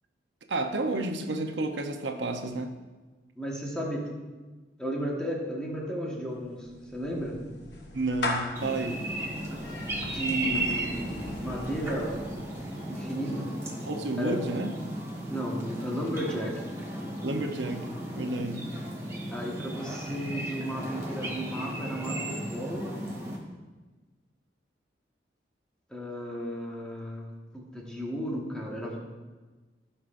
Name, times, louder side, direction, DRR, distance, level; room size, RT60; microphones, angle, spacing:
voice 1, 0.5-2.8 7.9-9.0 13.9-14.7 17.2-18.7, right 2 dB, 80° right, 5 dB, 0.7 m, -31 dB
voice 2, 3.3-4.1 4.8-7.4 10.0-12.2 12.9-13.5 14.2-14.4 15.3-16.6 19.3-22.9 25.9-29.0, equal, 5° left, -3 dB, 1.3 m, -34 dB
Clapping / Meow, 6.3-12.8, left 2 dB, 70° left, 1.0 m, -39 dB
sound 1, 8.6-23.4, right 1 dB, 15° right, 1.3 m, -35 dB
15.5 x 5.5 x 2.5 m, 1.3 s
head